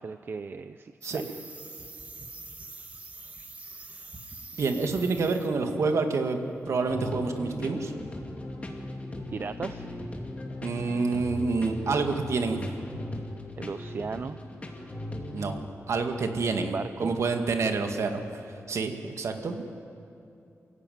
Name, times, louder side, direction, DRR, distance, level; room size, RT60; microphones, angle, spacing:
voice 1, 0.0-1.3 9.3-9.9 13.6-14.4 16.6-17.1, right 5 dB, 45° right, 11 dB, 0.5 m, -36 dB
sound 1, 1.0-5.6 5.8-6.1, right 3 dB, 30° right, 1.8 m, -44 dB
voice 2, 4.6-7.9 10.6-12.6 15.3-15.5 15.9-16.7 17.0-18.4 18.7-19.6, right 4 dB, 65° right, 5 dB, 2.0 m, -28 dB
sound 2, 6.7-15.6, left 1 dB, 25° left, 2.6 m, -38 dB
29.0 x 16.0 x 9.3 m, 2.7 s
wide cardioid pair, 165°, 5 cm